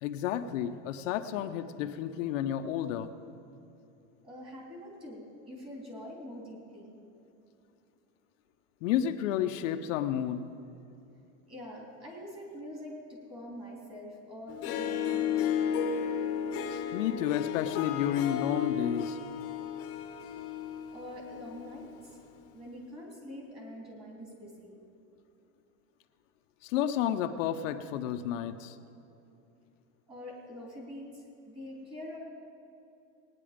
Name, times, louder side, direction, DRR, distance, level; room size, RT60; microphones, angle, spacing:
voice 1, 0.0-3.1 8.8-10.4 16.7-19.2 26.6-28.8, left 10 dB, 80° left, 7 dB, 0.8 m, -31 dB
voice 2, 4.2-6.9 11.5-15.6 20.9-22.2 22.5-24.8 30.1-32.2, left 1 dB, 15° right, -2 dB, 2.9 m, -45 dB
Harp, 14.5-21.9, left 8 dB, 40° left, 1.0 m, -33 dB
18.0 x 9.9 x 5.0 m, 2.8 s
supercardioid pair, 155°, 38 cm